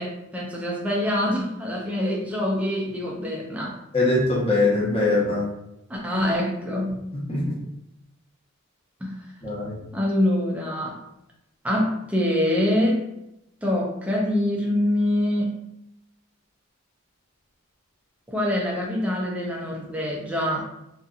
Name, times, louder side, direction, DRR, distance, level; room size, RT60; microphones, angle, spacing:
voice 1, 0.0-3.8 5.9-7.0 9.0-9.2 9.9-11.0 11.6-13.0 13.6-15.6 18.3-20.6, left 1 dB, 5° right, -3 dB, 0.4 m, -25 dB
voice 2, 3.9-5.5 7.3-7.5 9.4-9.7, left 2 dB, 25° left, -6 dB, 0.8 m, -22 dB
2.6 x 2.5 x 2.4 m, 0.86 s
head